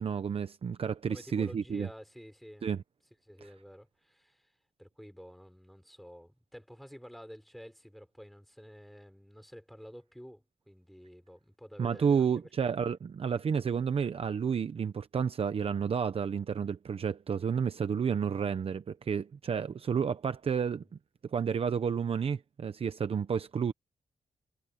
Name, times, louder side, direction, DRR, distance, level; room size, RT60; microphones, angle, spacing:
voice 1, 0.0-1.9 2.6-2.8 11.8-20.8 21.3-23.7, right 6 dB, 50° right, 0.9 m, -31 dB
voice 2, 1.1-2.7 3.3-4.5 4.8-12.7, equal, ahead, 5.3 m, -50 dB
wide cardioid pair, 130°, 13 cm